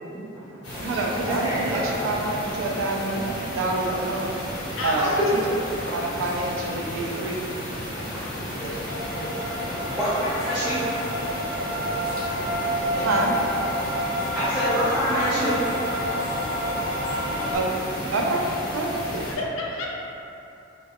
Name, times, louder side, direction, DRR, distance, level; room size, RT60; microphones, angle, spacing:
voice 1, 0.2-1.9 8.0-9.0 9.4-11.6 14.1-15.8 19.1-19.2, equal, 5° right, -12 dB, 0.4 m, -29 dB
sound 1, 0.6-19.3, left 1 dB, 60° left, 1.0 m, -33 dB
voice 2, 0.8-4.3 4.8-5.2 5.8-7.5 8.6-8.8 13.0-13.4 17.5-17.8 18.1-18.5 18.7-19.1, right 2 dB, 90° right, -1 dB, 0.4 m, -27 dB
voice 3, 4.8-5.4 19.1-19.9, left 2 dB, 75° left, -2 dB, 0.4 m, -31 dB
sound 2, 8.8-17.6, equal, 50° right, 0.7 m, -29 dB
2.2 x 2.1 x 3.4 m, 2.9 s
head